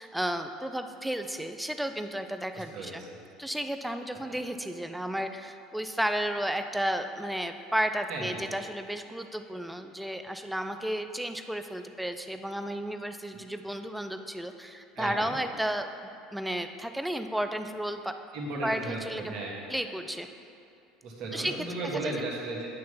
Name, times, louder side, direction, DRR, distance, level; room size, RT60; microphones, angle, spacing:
voice 1, 0.0-3.0 3.4-18.1 18.6-19.3 19.7-20.3 21.3-21.5 21.9-22.2, right 1 dB, 5° right, 7 dB, 0.4 m, -33 dB
voice 2, 2.5-3.2 8.1-8.4 14.9-15.3 18.3-19.5 21.0-22.7, right 2 dB, 55° right, -2 dB, 1.6 m, -35 dB
9.2 x 3.1 x 5.6 m, 2.6 s
hypercardioid pair, 80°, 0 cm